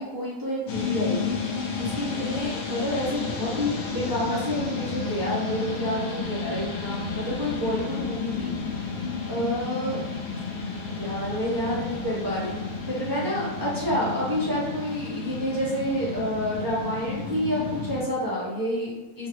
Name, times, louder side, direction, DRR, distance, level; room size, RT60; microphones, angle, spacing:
voice 1, 0.0-1.4 1.8-8.9 9.3-10.0 10.9-19.3, equal, 30° right, -9 dB, 0.3 m, -29 dB
sound 1, 0.7-18.0, left 5 dB, 65° left, 0.8 m, -32 dB
3.8 x 2.0 x 2.8 m, 1.2 s
omnidirectional pair, 1.6 m